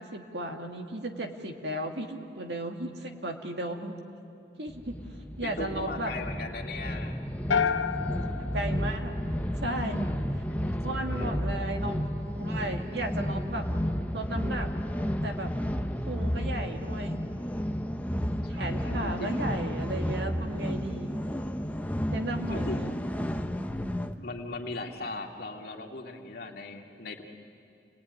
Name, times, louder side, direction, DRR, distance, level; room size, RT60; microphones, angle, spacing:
voice 1, 0.0-4.0 4.6-5.0 5.4-6.1 8.2-9.1 9.6-10.1 10.8-13.6 14.1-14.7 15.2-15.5 16.1-17.2 18.5-21.2 22.1-22.9, right 1 dB, 65° right, 3 dB, 2.2 m, -35 dB
sound 1, 4.7-24.1, equal, 10° left, 0.8 m, -32 dB
voice 2, 5.4-7.2 10.5-11.4 18.4-19.6 22.5-23.5 24.2-27.2, left 2 dB, 55° left, 1 dB, 2.4 m, -39 dB
sound 2, 7.5-9.8, left 6 dB, 90° left, 0.7 m, -30 dB
29.5 x 20.5 x 9.7 m, 2.6 s
head